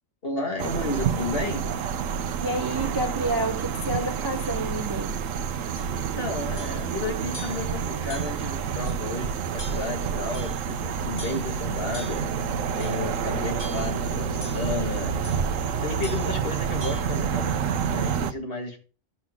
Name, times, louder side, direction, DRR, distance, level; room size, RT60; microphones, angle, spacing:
voice 1, 0.2-1.7 6.1-9.4 9.7-12.2 12.7-15.2 15.7-17.6 17.9-18.9, left 3 dB, 50° left, 2.2 m, -32 dB
sound 1, 0.6-18.3, right 7 dB, 85° right, 1.1 m, -28 dB
voice 2, 2.4-5.2, right 1 dB, 20° right, 0.7 m, -29 dB
sound 2, 5.8-5.9 6.6-6.8 7.3-7.7 8.1-8.4 8.9-9.0 9.6-9.9 10.3-10.7 11.2-11.5 11.9-12.3 12.8-13.1 13.6-14.0 14.4-14.7 15.2-15.5 16.0-16.3 16.8-17.0, left 1 dB, 85° left, 4.9 m, -42 dB
11.0 x 7.3 x 3.7 m
omnidirectional pair, 1.3 m